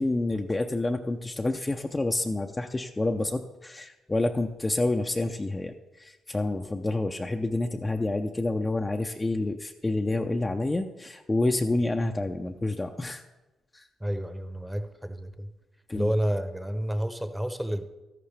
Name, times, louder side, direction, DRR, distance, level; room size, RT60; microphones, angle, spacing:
voice 1, 0.0-5.7 6.0-13.2 13.7-13.8 15.9-16.1, left 2 dB, 20° left, 4 dB, 0.5 m, -28 dB
voice 2, 14.0-15.5 15.9-17.8, equal, 5° right, 9 dB, 0.9 m, -30 dB
13.0 x 11.0 x 3.4 m, 1.1 s
supercardioid pair, 70°, 0 cm